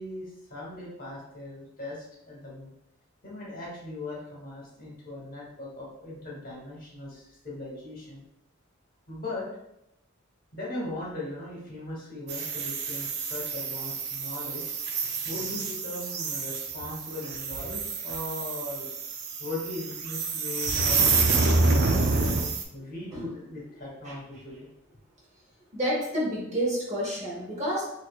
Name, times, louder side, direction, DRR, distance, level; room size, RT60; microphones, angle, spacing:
voice 1, 0.0-2.7 3.2-8.2 9.1-9.5 10.5-14.7 15.2-18.9 19.4-22.3 22.7-24.7, left 2 dB, 40° left, -5 dB, 1.3 m, -39 dB
sound 1, 12.3-22.6, right 3 dB, 50° right, 0.4 m, -28 dB
voice 2, 25.7-27.8, equal, 30° right, -5 dB, 1.0 m, -29 dB
4.2 x 2.6 x 2.4 m, 0.84 s
head